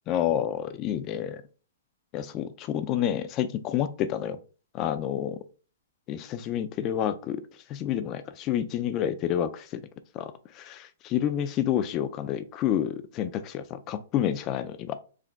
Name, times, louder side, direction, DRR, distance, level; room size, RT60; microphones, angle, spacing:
voice 1, 0.1-1.4 2.1-4.4 4.7-5.4 6.1-7.4 7.7-9.8 10.1-15.0, left 10 dB, 25° left, 0.4 m, -29 dB
5.0 x 2.9 x 3.4 m
hypercardioid pair, 155°, 0 cm